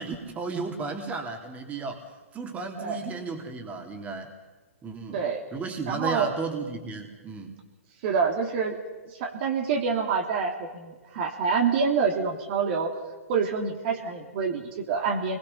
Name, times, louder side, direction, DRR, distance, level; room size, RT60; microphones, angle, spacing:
voice 1, 0.0-2.1 2.3-4.3 4.8-5.2 5.5-7.6, right 4 dB, 20° right, 3 dB, 3.3 m, -34 dB
voice 2, 5.9-6.3 8.0-8.8 9.0-12.9 13.3-15.4, right 5 dB, 45° right, 2 dB, 3.0 m, -27 dB
29.0 x 22.0 x 5.7 m, 1.3 s
hypercardioid pair, 120°, 8 cm